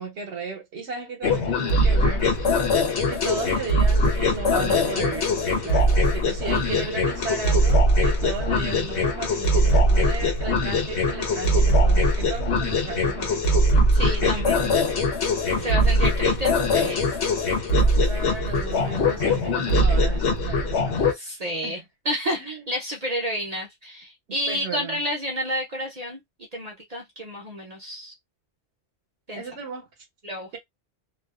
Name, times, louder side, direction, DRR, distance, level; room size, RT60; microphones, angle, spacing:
voice 1, 0.0-2.6 3.1-13.5 13.8-13.9 14.2-14.8 15.6-15.9 18.0-21.8 22.4-22.7 24.5-25.0 29.3-29.9, right 4 dB, 80° right, 1.0 m, -35 dB
sound 1, 1.2-21.1, left 1 dB, 80° left, 1.0 m, -21 dB
voice 2, 13.9-14.7 15.6-17.2 21.1-26.2 26.5-28.1 29.3-29.4 30.2-30.6, equal, 45° right, 0.6 m, -30 dB
2.4 x 2.3 x 2.3 m
omnidirectional pair, 1.1 m